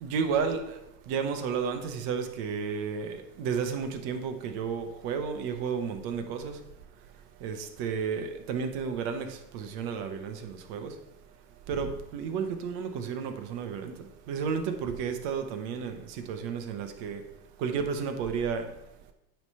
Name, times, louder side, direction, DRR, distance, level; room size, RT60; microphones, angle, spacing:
voice 1, 0.0-0.8 1.1-6.6 7.4-10.9 11.7-17.2 17.6-18.7, right 6 dB, 50° right, 1.1 m, -32 dB
9.0 x 3.4 x 5.5 m
hypercardioid pair, 115°, 49 cm